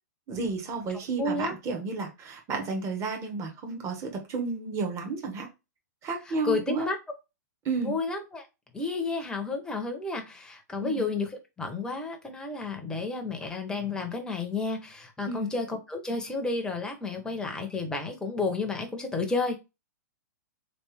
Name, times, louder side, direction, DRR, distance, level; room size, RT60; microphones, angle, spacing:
voice 1, 0.3-5.5 6.0-6.9 7.6-7.9 10.8-11.1 15.2-15.5, right 4 dB, 30° right, 2 dB, 1.2 m, -32 dB
voice 2, 1.2-1.5 6.3-7.0 7.8-8.4 8.7-19.6, left 3 dB, 10° left, 3 dB, 0.8 m, -31 dB
3.3 x 2.5 x 3.2 m, 0.25 s
hypercardioid pair, 125°, 9 cm